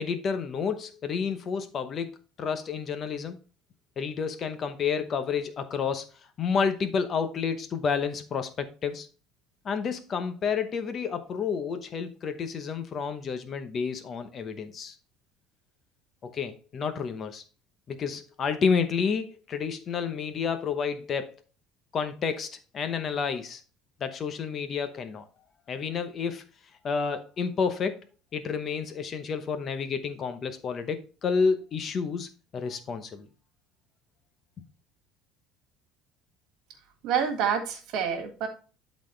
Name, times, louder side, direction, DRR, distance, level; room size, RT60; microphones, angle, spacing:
voice 1, 0.0-3.4 4.0-6.1 6.4-9.1 9.6-15.0 16.2-17.4 17.9-21.4 21.9-23.6 24.0-25.2 25.7-26.4 26.8-28.0 28.3-33.3 34.6-34.7, left 6 dB, 25° left, 0.8 m, -30 dB
voice 2, 37.0-38.5, right 7 dB, 50° right, 2.0 m, -27 dB
12.0 x 4.2 x 3.2 m
cardioid pair, 175°, 0 cm